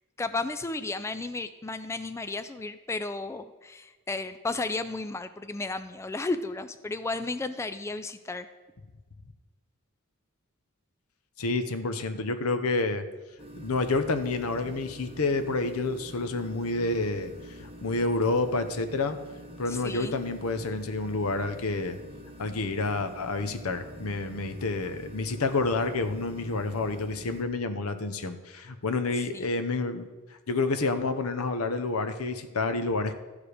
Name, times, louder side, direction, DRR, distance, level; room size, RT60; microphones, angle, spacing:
voice 1, 0.2-8.5 19.7-20.2 29.3-29.5, left 3 dB, 15° left, 10 dB, 0.3 m, -33 dB
voice 2, 11.4-13.0 13.6-19.2 19.6-22.0 22.4-30.1 30.5-33.1, left 3 dB, 80° left, 9 dB, 0.8 m, -29 dB
sound 1, 13.4-27.4, equal, 25° right, 1.0 m, -46 dB
13.0 x 4.9 x 4.9 m, 1.2 s
head